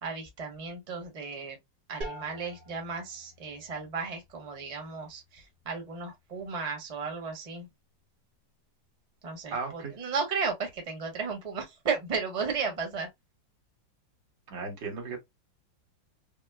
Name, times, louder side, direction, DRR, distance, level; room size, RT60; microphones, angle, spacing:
voice 1, 0.0-1.6 1.9-7.7 9.2-13.1, right 5 dB, 25° right, 1.0 m, -34 dB
sound 1, 2.0-7.5, right 1 dB, 50° right, 0.6 m, -48 dB
voice 2, 9.5-9.9 14.5-15.2, right 4 dB, 85° right, 2.0 m, -35 dB
5.0 x 2.1 x 2.3 m
omnidirectional pair, 2.0 m